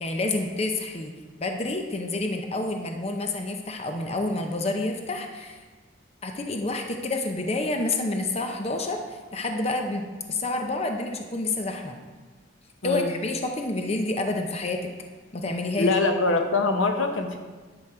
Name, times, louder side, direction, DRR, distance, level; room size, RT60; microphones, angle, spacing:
voice 1, 0.0-1.1 1.4-5.6 6.2-12.0 12.8-14.9 15.3-15.9, left 2 dB, 30° left, 4 dB, 0.7 m, -28 dB
voice 2, 12.8-13.1 15.8-17.4, left 3 dB, 85° left, 5 dB, 1.0 m, -23 dB
10.5 x 6.4 x 4.4 m, 1.4 s
head